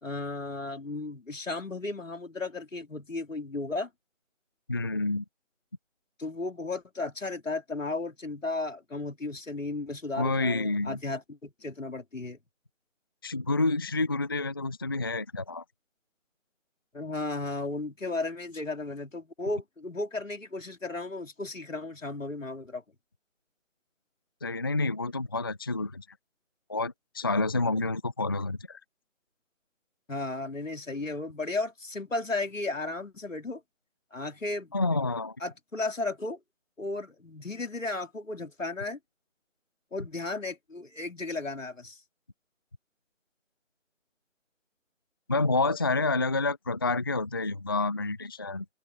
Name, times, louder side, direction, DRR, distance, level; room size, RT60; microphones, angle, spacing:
voice 1, 0.0-3.9 6.2-12.4 16.9-22.8 30.1-33.6 34.1-34.7 35.4-36.4 36.8-39.0 39.9-42.0, left 2 dB, 75° left, 3.6 m, -34 dB
voice 2, 4.7-5.2 10.2-11.0 13.2-15.6 24.4-26.1 26.7-28.8 34.7-35.4 45.3-48.7, left 3 dB, 20° left, 0.6 m, -28 dB
figure-of-eight pair, 150°, 39 cm